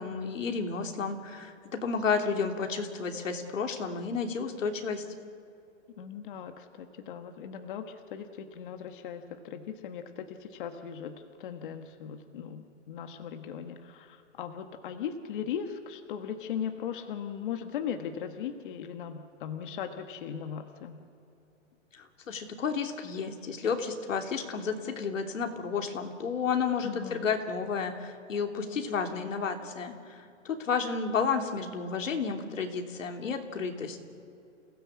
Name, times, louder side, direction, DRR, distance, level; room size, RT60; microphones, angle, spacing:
voice 1, 0.0-5.0 21.9-34.0, left 5 dB, 85° left, 4 dB, 3.2 m, -32 dB
voice 2, 6.0-21.0 26.8-27.3, left 8 dB, 40° left, 6 dB, 1.5 m, -38 dB
28.5 x 17.0 x 8.7 m, 2.8 s
hypercardioid pair, 165°, 37 cm